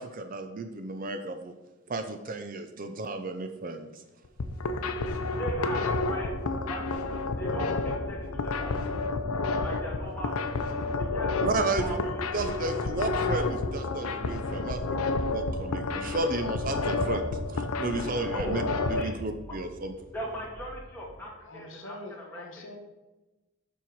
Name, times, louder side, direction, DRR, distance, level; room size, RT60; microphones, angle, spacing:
voice 1, 0.0-1.5 1.9-4.0 11.4-12.0 12.3-15.0 15.3-18.6 18.9-19.9, right 2 dB, 40° right, 8 dB, 0.5 m, -33 dB
sound 1, 4.2-19.0, left 3 dB, 90° left, 0.6 m, -30 dB
sound 2, 4.6-21.1, right 1 dB, 20° right, 1.4 m, -45 dB
voice 2, 5.4-6.3 6.7-7.0 7.4-8.8 9.6-10.5 11.0-12.3 18.3-18.5 18.9-19.2 20.1-21.9 22.3-22.7, right 1 dB, 10° left, -4 dB, 1.9 m, -38 dB
voice 3, 21.4-22.8, left 2 dB, 65° left, 3 dB, 1.1 m, -45 dB
7.4 x 5.5 x 4.6 m, 1.1 s
head